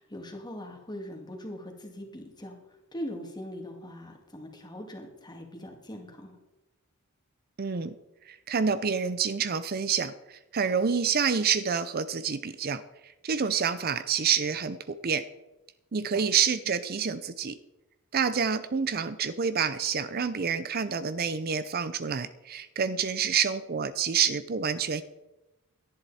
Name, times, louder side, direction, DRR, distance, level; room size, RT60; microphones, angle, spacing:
voice 1, 0.0-2.6 2.9-6.4 16.1-16.2, equal, 20° left, 2 dB, 2.3 m, -41 dB
voice 2, 7.6-7.9 8.3-12.8 13.2-15.2 15.9-17.6 18.1-25.0, right 6 dB, 45° right, 13 dB, 0.5 m, -28 dB
17.5 x 11.5 x 4.2 m, 0.99 s
head